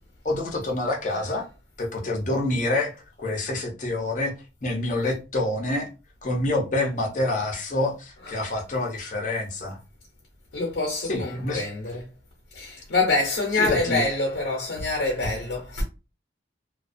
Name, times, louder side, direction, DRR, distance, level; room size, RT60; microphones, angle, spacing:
voice 1, 0.2-1.5 1.8-4.3 4.6-5.9 6.2-9.8 11.0-11.6 13.5-14.0, left 2 dB, 45° left, 0.7 m, -27 dB
voice 2, 10.5-12.0 12.5-15.8, left 2 dB, 85° left, 0.7 m, -26 dB
2.3 x 2.3 x 2.5 m
head